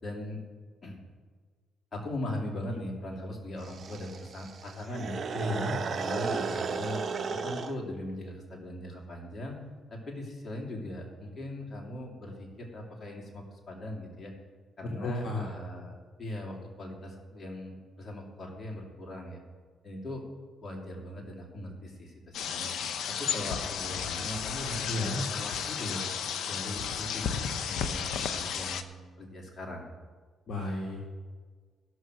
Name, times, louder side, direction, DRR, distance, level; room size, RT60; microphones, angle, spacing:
voice 1, 0.0-0.4 0.8-1.0 1.9-5.2 5.7-7.0 7.3-9.6 9.9-14.3 14.8-15.9 16.2-19.4 19.8-20.2 20.6-22.7 23.1-26.0 26.5-29.9, left 1 dB, 35° left, -1 dB, 3.0 m, -39 dB
sound 1, 3.6-7.7, right 5 dB, 45° right, 0.8 m, -34 dB
voice 2, 5.3-5.7 15.0-15.5 24.9-25.2 30.5-31.0, left 2 dB, 55° left, -2 dB, 1.9 m, -32 dB
sound 2, 22.3-28.8, left 7 dB, 75° left, 0.7 m, -33 dB
15.0 x 6.4 x 6.4 m, 1.5 s
cardioid pair, 90°, 0 cm